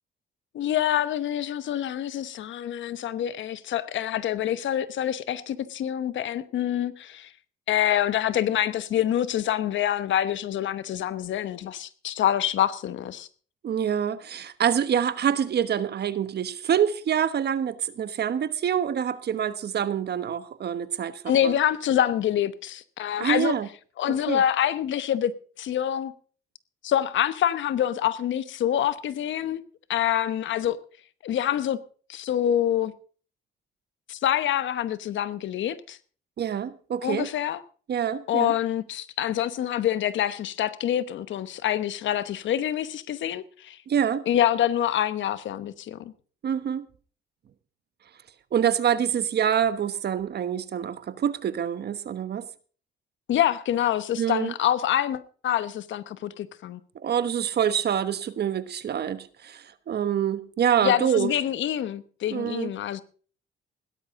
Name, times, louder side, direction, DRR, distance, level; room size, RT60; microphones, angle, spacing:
voice 1, 0.5-7.3 7.7-13.3 21.3-23.5 24.0-25.3 25.6-26.1 26.8-29.6 29.9-30.8 31.2-31.8 32.1-32.9 34.1-36.0 37.0-37.6 38.3-43.8 44.3-46.1 53.3-56.8 60.8-63.0, left 11 dB, 70° left, 1.1 m, -26 dB
voice 2, 13.6-21.5 23.2-23.7 24.3-24.4 36.4-37.3 37.9-38.5 43.9-44.2 46.4-46.9 48.5-52.5 54.2-54.5 57.0-61.3 62.3-62.7, right 8 dB, 55° right, 1.2 m, -26 dB
16.5 x 12.5 x 3.7 m
cardioid pair, 90°, 20 cm